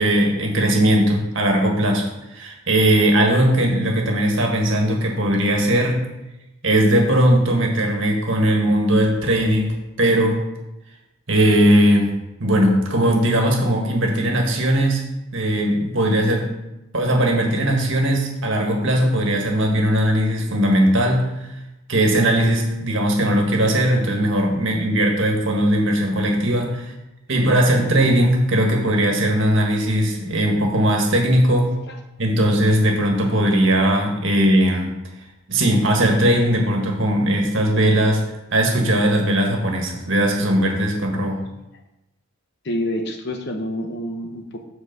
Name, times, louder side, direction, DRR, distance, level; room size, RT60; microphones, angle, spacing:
voice 1, 0.0-6.0 6.6-10.4 11.3-15.0 15.3-16.5 16.9-21.5 21.9-26.9 27.3-31.7 32.2-34.9 35.5-38.2 38.5-41.5, right 1 dB, 60° right, 1 dB, 1.6 m, -19 dB
voice 2, 42.6-44.7, left 1 dB, 50° left, 5 dB, 0.9 m, -28 dB
7.0 x 4.6 x 6.6 m, 0.95 s
head